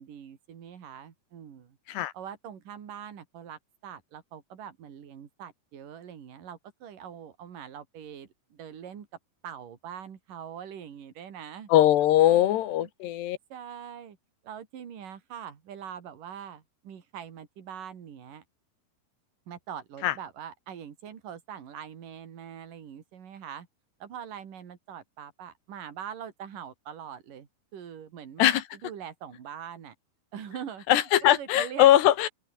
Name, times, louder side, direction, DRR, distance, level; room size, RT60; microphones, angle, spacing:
voice 1, 0.0-1.8 2.1-9.1 9.4-11.7 12.2-12.9 13.5-14.2 14.4-18.4 19.5-23.7 24.0-29.9 30.3-31.1 31.4-31.9, right 8 dB, 55° right, 4.2 m, -43 dB
voice 2, 11.7-13.4 20.0-20.2 28.4-28.6 30.9-32.3, left 13 dB, 80° left, 3.5 m, -21 dB
open air
omnidirectional pair, 4.8 m